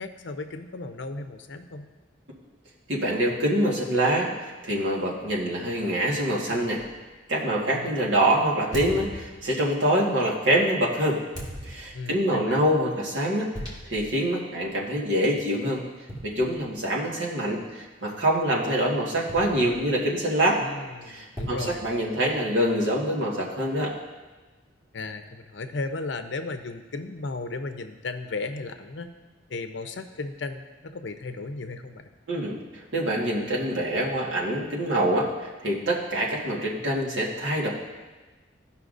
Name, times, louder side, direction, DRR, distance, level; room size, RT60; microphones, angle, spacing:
voice 1, 0.0-1.9 7.7-8.0 11.9-12.6 20.6-21.8 24.9-29.1 29.5-32.1, left 3 dB, 70° left, 7 dB, 0.6 m, -35 dB
voice 2, 2.9-6.8 7.3-11.2 11.6-13.5 13.8-15.8 16.2-20.6 21.0-23.9 32.3-37.7, right 1 dB, 75° right, -4 dB, 1.6 m, -25 dB
sound 1, 6.8-7.0 8.7-9.7 11.3-12.2 13.5-14.2 14.6-14.7 16.1-17.0 19.3-20.1 21.4-22.5, equal, 20° right, 1.8 m, -38 dB
15.0 x 5.7 x 2.6 m, 1.2 s
head